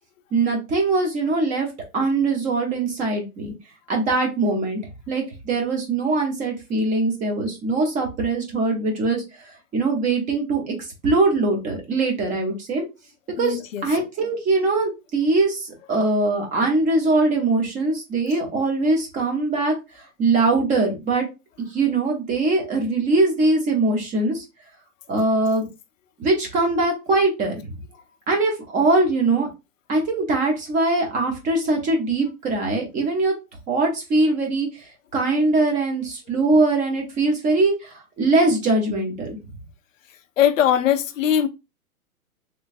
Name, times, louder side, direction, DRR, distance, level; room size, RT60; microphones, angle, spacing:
voice 1, 0.3-1.7 1.9-3.5 3.9-4.8 5.1-9.2 9.7-10.7 11.0-12.8 13.4-19.7 20.2-21.3 21.7-24.4 25.1-25.7 26.2-27.7 28.3-29.5 29.9-33.3 33.7-39.4, right 3 dB, 15° right, 0.8 m, -22 dB
voice 2, 13.4-13.9 40.4-41.5, left 10 dB, 60° left, 0.6 m, -20 dB
3.2 x 3.1 x 2.5 m
hypercardioid pair, 140°, 45 cm